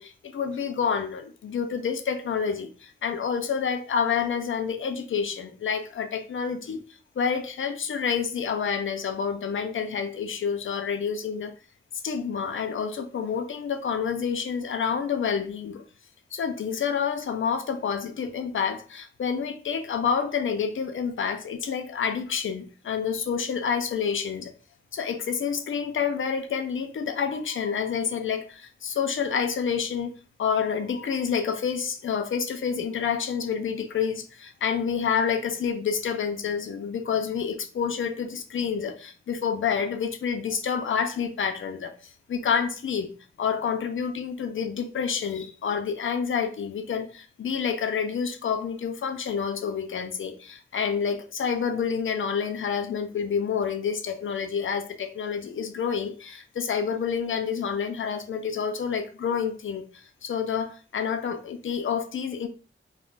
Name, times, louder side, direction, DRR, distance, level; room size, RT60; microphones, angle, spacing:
voice 1, 0.0-6.8 7.2-11.5 12.0-15.8 16.3-24.5 24.9-30.1 30.4-41.9 42.3-43.1 43.4-62.5, left 6 dB, 70° left, 0.5 m, -28 dB
2.4 x 2.1 x 3.6 m
wide cardioid pair, 105°, 21 cm